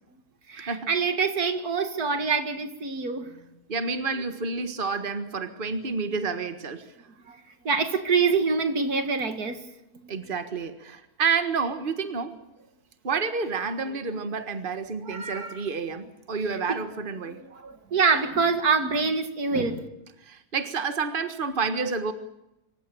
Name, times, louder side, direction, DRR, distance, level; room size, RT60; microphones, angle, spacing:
voice 1, 0.5-3.3 7.3-7.4 7.6-9.6 15.0-15.6 16.5-16.8 17.3-19.9, right 5 dB, 85° right, 9 dB, 2.5 m, -26 dB
voice 2, 3.7-6.9 10.1-12.4 13.0-17.4 20.3-22.1, right 5 dB, 35° right, 10 dB, 1.7 m, -29 dB
26.0 x 15.5 x 8.8 m, 0.88 s
omnidirectional pair, 1.6 m